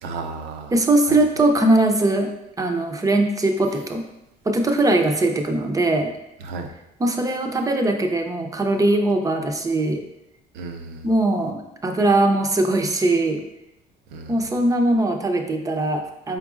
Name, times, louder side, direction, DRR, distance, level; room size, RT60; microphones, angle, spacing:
voice 1, 0.0-0.7 1.1-1.2 6.4-6.7 10.5-11.1 14.1-14.5, right 4 dB, 85° right, 4 dB, 0.6 m, -34 dB
voice 2, 0.7-2.3 2.6-4.1 4.5-6.1 7.0-10.0 11.0-13.4 14.3-16.4, right 2 dB, 20° right, 4 dB, 0.5 m, -20 dB
4.4 x 3.8 x 2.4 m, 0.87 s
cardioid pair, 110°, 17 cm